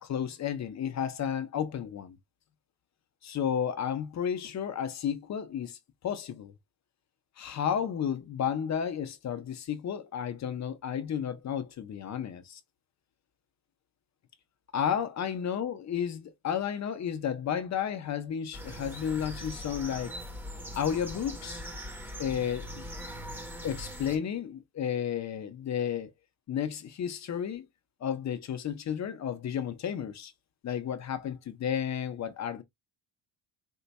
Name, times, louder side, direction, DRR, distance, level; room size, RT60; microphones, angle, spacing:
voice 1, 0.0-2.2 3.2-5.8 6.0-6.5 7.4-12.6 14.7-20.2 20.8-21.6 22.2-22.9 23.6-26.1 26.5-27.7 28.0-30.3 30.6-32.6, left 8 dB, 40° left, 0.6 m, -32 dB
sound 1, 18.5-24.2, equal, 5° right, 0.7 m, -41 dB
4.4 x 2.2 x 4.0 m
cardioid pair, 165°, 46 cm